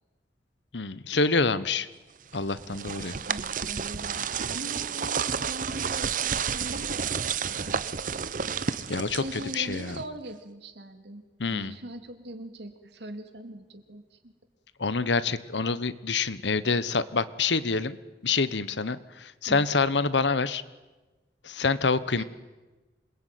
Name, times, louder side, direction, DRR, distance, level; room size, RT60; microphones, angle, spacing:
voice 1, 0.7-1.9 2.3-3.2 8.9-10.0 11.4-11.7 14.8-18.0 18.2-20.6 21.4-22.2, left 4 dB, 90° left, 15 dB, 1.2 m, -27 dB
sound 1, 2.3-10.1, right 6 dB, 50° right, 0.8 m, -31 dB
voice 2, 3.2-7.9 9.2-11.2 11.5-14.3 19.5-19.7 22.1-22.2, right 1 dB, 75° right, 7 dB, 2.9 m, -41 dB
26.5 x 21.5 x 9.4 m, 1.2 s
head